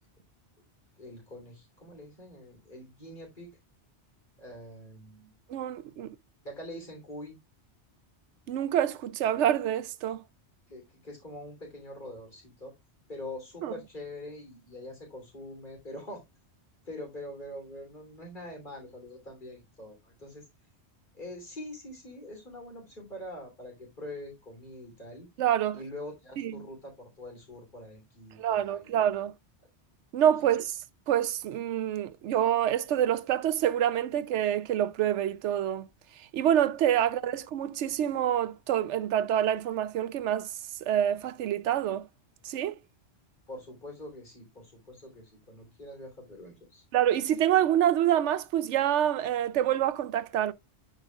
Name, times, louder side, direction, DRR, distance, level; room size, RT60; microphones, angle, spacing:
voice 1, 1.0-3.5 4.4-5.3 6.4-7.4 10.7-12.7 13.1-16.2 16.8-20.4 21.1-25.3 25.7-29.2 43.5-46.8, left 1 dB, 45° left, 3.4 m, -44 dB
voice 2, 5.5-6.1 8.5-10.2 13.6-13.7 25.4-25.8 26.4-26.6 28.4-29.3 30.1-30.8 31.1-35.9 36.3-40.5 40.8-42.1 42.4-42.7 46.9-50.5, right 10 dB, 80° right, 0.9 m, -27 dB
9.1 x 5.4 x 2.3 m
omnidirectional pair, 1.2 m